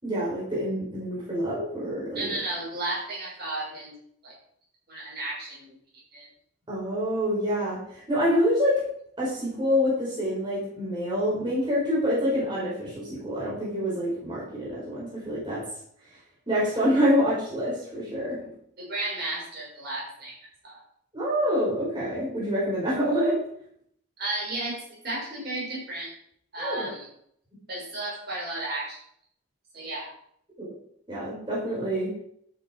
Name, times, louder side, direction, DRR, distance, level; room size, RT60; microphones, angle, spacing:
voice 1, 0.0-2.4 6.7-8.8 9.2-15.6 16.5-18.4 21.1-23.4 26.6-26.9 30.6-30.8 31.1-32.1, equal, 25° right, -7 dB, 5.5 m, -26 dB
voice 2, 2.1-3.9 4.2-4.3 4.9-5.8 6.1-6.3 18.8-20.8 24.2-26.1 26.5-27.1 27.7-29.0 29.7-30.1, right 2 dB, 50° right, -4 dB, 6.3 m, -33 dB
12.0 x 9.0 x 4.7 m, 0.68 s
head